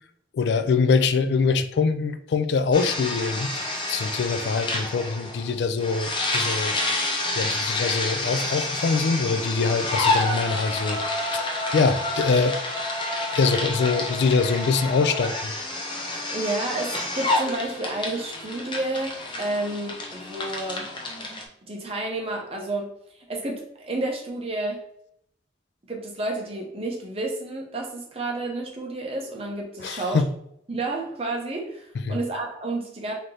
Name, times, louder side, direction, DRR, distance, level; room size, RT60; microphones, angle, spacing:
voice 1, 0.3-3.5 3.9-6.8 7.4-11.0 11.3-11.4 11.7-12.6 13.3-15.5 29.8-30.3 32.1-32.2, left 4 dB, 70° left, 10 dB, 0.3 m, -23 dB
sound 1, 2.7-21.4, left 2 dB, 25° left, 0.7 m, -29 dB
voice 2, 16.3-20.9 21.7-22.9 23.1-24.8 25.9-30.2 30.7-33.1, right 2 dB, 30° right, 0 dB, 0.8 m, -30 dB
3.2 x 2.8 x 3.9 m, 0.74 s
head